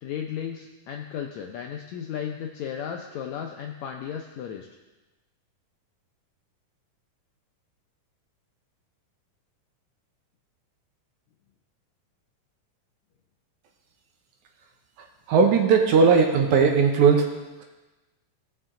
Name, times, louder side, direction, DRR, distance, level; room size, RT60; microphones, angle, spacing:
voice 1, 0.0-4.7, left 8 dB, 80° left, 2 dB, 1.6 m, -34 dB
voice 2, 15.3-17.3, right 5 dB, 70° right, 3 dB, 2.2 m, -18 dB
17.0 x 6.2 x 3.8 m, 1.1 s
omnidirectional pair, 3.9 m